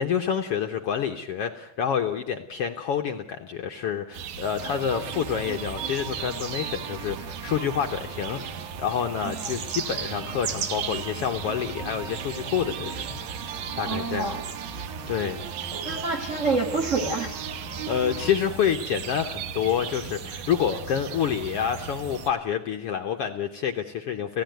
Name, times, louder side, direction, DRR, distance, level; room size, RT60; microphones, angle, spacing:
voice 1, 0.0-13.0 13.8-14.3 15.1-15.5 17.9-24.4, left 8 dB, 80° left, 5 dB, 1.3 m, -28 dB
sound 1, 4.1-22.3, right 7 dB, 65° right, 2.5 m, -36 dB
sound 2, 4.6-18.3, right 6 dB, 85° right, 3.7 m, -39 dB
voice 2, 13.9-14.4 15.7-17.4, right 3 dB, 35° right, 7 dB, 1.2 m, -28 dB
28.0 x 16.0 x 9.3 m, 0.87 s
omnidirectional pair, 4.1 m